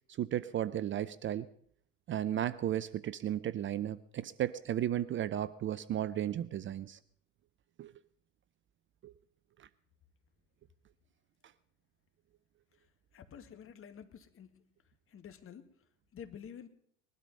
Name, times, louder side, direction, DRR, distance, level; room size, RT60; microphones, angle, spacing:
voice 1, 0.2-1.5 2.1-7.0 7.8-7.9 9.0-9.1 9.6-9.7, right 11 dB, 30° right, 17 dB, 0.6 m, -34 dB
voice 2, 12.7-14.7 15.1-16.7, left 8 dB, 35° left, 9 dB, 2.0 m, -51 dB
21.0 x 12.0 x 5.4 m, 0.64 s
hypercardioid pair, 85°, 38 cm